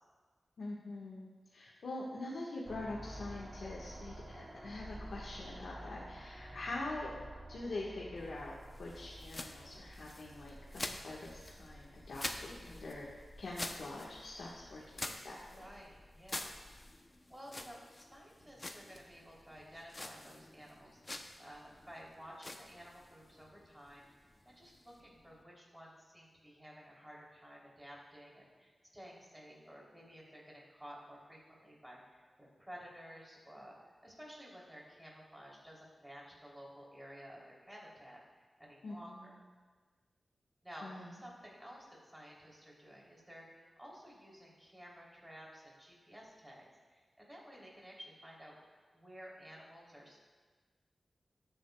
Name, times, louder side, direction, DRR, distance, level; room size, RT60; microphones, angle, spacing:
voice 1, 0.6-7.1 7.5-13.1 13.4-15.6 38.8-39.4 40.8-41.2, left 2 dB, 80° left, -6 dB, 1.4 m, -44 dB
sound 1, 2.7-15.0, right 1 dB, 30° right, 1.1 m, -52 dB
sound 2, 8.2-25.4, left 1 dB, 25° left, 0.7 m, -48 dB
voice 2, 15.5-16.6 17.3-24.0 24.4-33.8 34.0-39.3 40.6-48.5 48.9-50.2, equal, 10° right, -4 dB, 3.2 m, -53 dB
18.0 x 8.9 x 2.3 m, 1.4 s
wide cardioid pair, 105°, 0 cm